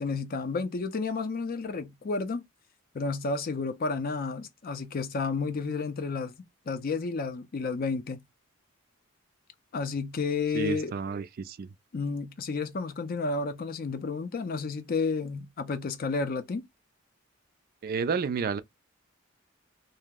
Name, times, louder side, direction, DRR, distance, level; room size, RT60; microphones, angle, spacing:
voice 1, 0.0-2.4 2.9-6.3 6.7-8.2 9.7-10.9 11.9-16.6, left 4 dB, 45° left, 0.4 m, -31 dB
voice 2, 10.5-11.7 17.8-18.6, right 5 dB, 45° right, 0.3 m, -30 dB
2.7 x 2.0 x 3.4 m
head